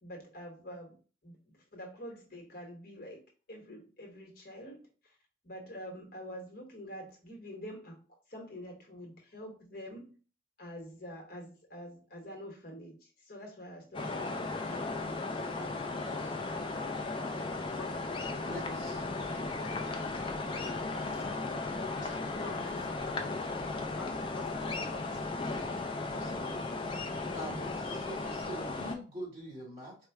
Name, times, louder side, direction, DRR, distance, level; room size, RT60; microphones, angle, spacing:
voice 1, 0.0-5.2 5.4-10.2 10.6-15.1, equal, 50° left, 1 dB, 1.2 m, -47 dB
sound 1, 13.9-28.9, left 3 dB, 25° left, 0.4 m, -36 dB
voice 2, 18.2-19.3 25.4-25.7 26.1-26.5 27.3-30.0, right 1 dB, 30° right, -5 dB, 2.0 m, -44 dB
voice 3, 19.3-19.7 20.5-21.5 21.7-25.4, left 3 dB, 85° left, 1 dB, 0.9 m, -48 dB
4.4 x 2.3 x 3.4 m, 0.37 s
head